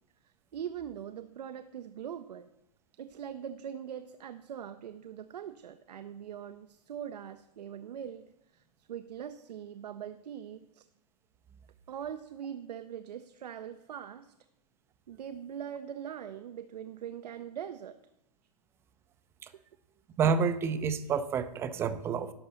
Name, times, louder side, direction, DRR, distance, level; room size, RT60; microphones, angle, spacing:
voice 1, 0.2-2.5 3.0-10.8 11.9-14.3 15.1-18.0, right 9 dB, 75° right, 10 dB, 0.5 m, -42 dB
voice 2, 20.2-22.3, right 6 dB, 10° right, 12 dB, 0.4 m, -29 dB
11.5 x 3.9 x 6.7 m, 0.84 s
hypercardioid pair, 135°, 21 cm